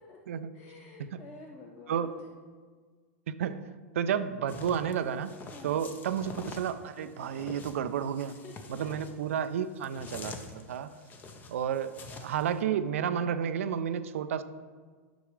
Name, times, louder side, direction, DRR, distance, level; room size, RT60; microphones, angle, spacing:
voice 1, 0.5-2.3 5.5-5.9 8.3-8.5, left 4 dB, 60° left, -3 dB, 2.5 m, -49 dB
voice 2, 3.4-3.7 3.9-5.3 5.6-8.3 8.8-10.9 11.5-14.4, right 8 dB, 80° right, 12 dB, 0.5 m, -31 dB
sound 1, 4.5-12.6, left 3 dB, 25° left, 0.8 m, -46 dB
10.0 x 6.1 x 3.2 m, 1.5 s
supercardioid pair, 130°, 7 cm